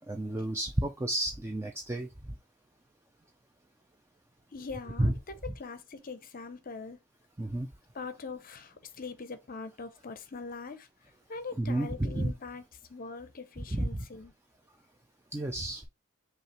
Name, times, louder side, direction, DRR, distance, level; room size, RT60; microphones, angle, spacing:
voice 1, 0.1-2.1 5.0-5.1 7.4-7.7 11.6-12.3 13.7-14.0 15.3-15.8, right 1 dB, 10° right, 0.4 m, -31 dB
voice 2, 4.5-7.0 7.9-10.9 11.3-12.6 12.9-14.3, left 4 dB, 40° left, 0.6 m, -42 dB
5.5 x 2.5 x 2.9 m
head